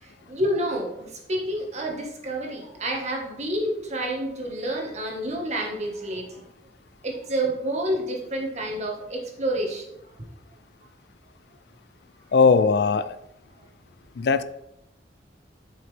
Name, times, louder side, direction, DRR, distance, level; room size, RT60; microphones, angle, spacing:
voice 1, 0.0-6.4 7.0-9.8, right 1 dB, 40° right, 0 dB, 1.5 m, -29 dB
voice 2, 12.3-13.2 14.2-14.4, left 4 dB, 65° left, 14 dB, 0.4 m, -19 dB
7.4 x 5.7 x 3.4 m, 0.83 s
head